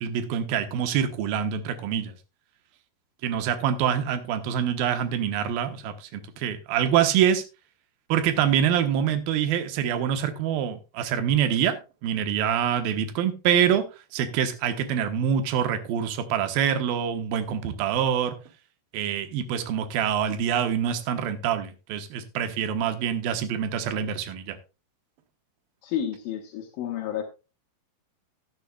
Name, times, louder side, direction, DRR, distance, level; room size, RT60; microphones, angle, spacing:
voice 1, 0.0-2.1 3.2-7.4 8.1-11.8 12.0-13.8 14.1-18.4 18.9-24.6, right 9 dB, 70° right, 8 dB, 2.3 m, -25 dB
voice 2, 25.8-27.2, left 10 dB, 80° left, 3 dB, 3.7 m, -31 dB
13.0 x 11.5 x 2.3 m, 0.29 s
omnidirectional pair, 5.7 m